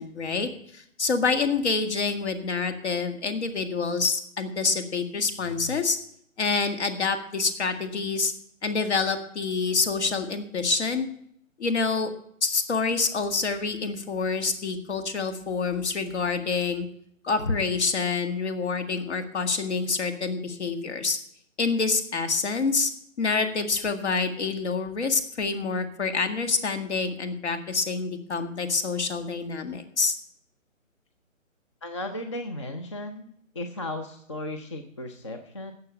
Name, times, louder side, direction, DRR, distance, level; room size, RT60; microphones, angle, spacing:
voice 1, 0.0-6.0 6.4-8.3 8.6-11.1 11.6-12.1 12.4-16.9 17.2-21.2 21.6-22.9 23.2-30.2, left 4 dB, 55° left, 8 dB, 2.0 m, -27 dB
voice 2, 31.8-33.3 33.5-35.7, left 1 dB, 20° left, 6 dB, 0.5 m, -35 dB
17.5 x 6.8 x 5.4 m, 0.68 s
figure-of-eight pair, 150°, 41 cm